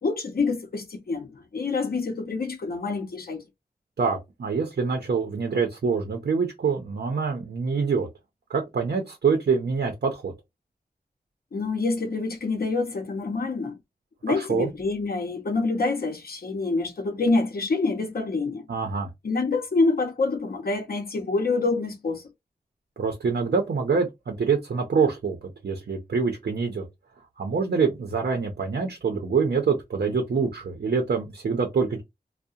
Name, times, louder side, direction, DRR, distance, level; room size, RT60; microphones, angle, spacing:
voice 1, 0.0-3.4 11.5-13.8 14.2-18.6 19.2-22.2, left 3 dB, 70° left, 0.6 m, -26 dB
voice 2, 4.0-8.1 8.5-10.3 14.3-14.7 18.7-19.1 23.0-26.9 27.4-32.0, right 5 dB, 90° right, 0.6 m, -25 dB
2.7 x 2.1 x 2.3 m
wide cardioid pair, 65°, 16 cm